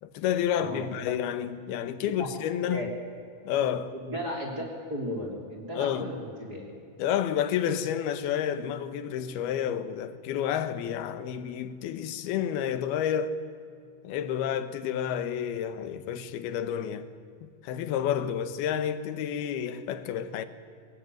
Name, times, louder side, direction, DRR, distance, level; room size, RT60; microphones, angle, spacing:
voice 1, 0.0-2.9 3.4-3.9 5.8-6.1 7.0-13.3 14.0-17.1 17.4-20.5, left 9 dB, 90° left, 3.1 m, -30 dB
voice 2, 0.5-0.9 2.0-2.3 2.7-2.9 4.0-4.6 4.9-6.7, equal, 25° right, 3.6 m, -35 dB
23.0 x 20.5 x 9.3 m
omnidirectional pair, 4.4 m